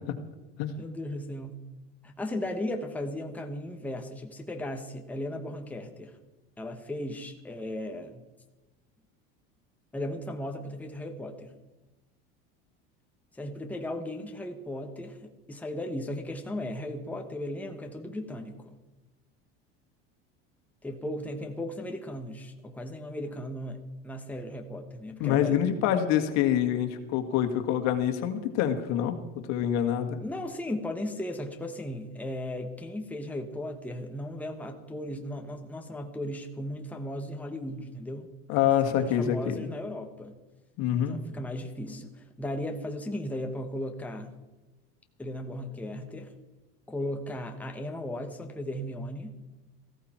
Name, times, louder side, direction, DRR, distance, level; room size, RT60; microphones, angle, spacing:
voice 1, 0.8-1.6 2.0-6.2 6.6-8.2 9.9-11.6 13.3-18.8 20.8-25.6 30.2-38.3 38.8-40.4 41.0-44.3 45.2-46.3 46.9-49.3, left 1 dB, 5° left, 4 dB, 1.2 m, -36 dB
voice 2, 25.2-29.1 29.5-30.2 38.5-39.7 40.8-41.2, left 10 dB, 60° left, 7 dB, 1.9 m, -26 dB
15.0 x 14.0 x 4.4 m, 1.1 s
supercardioid pair, 125°, 30 cm